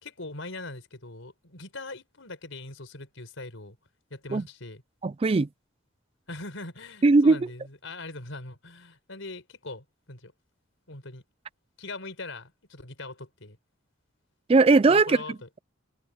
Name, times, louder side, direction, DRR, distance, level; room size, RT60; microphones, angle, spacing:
voice 1, 0.0-3.8 4.1-4.8 6.3-10.3 10.9-11.2 11.8-13.6 14.9-15.5, left 2 dB, 80° left, 4.6 m, -41 dB
voice 2, 5.0-5.5 7.0-7.4 14.5-15.2, right 3 dB, 30° right, 0.4 m, -19 dB
head